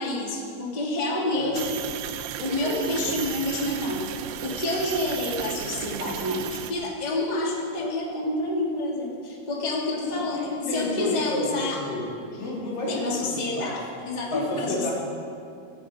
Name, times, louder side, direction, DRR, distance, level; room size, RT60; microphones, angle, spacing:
voice 1, 0.0-1.7 2.4-4.0 4.4-11.8 12.9-14.9, left 1 dB, 15° left, -3 dB, 1.8 m, -28 dB
voice 2, 1.1-1.6 2.6-2.7 3.1-3.2 9.9-12.1 12.4-14.0 14.3-14.9, left 2 dB, 55° left, -5 dB, 4.8 m, -31 dB
sound 1, 1.6-6.7, right 9 dB, 80° right, 2.7 m, -34 dB
17.5 x 16.0 x 5.0 m, 2.4 s
omnidirectional pair, 4.7 m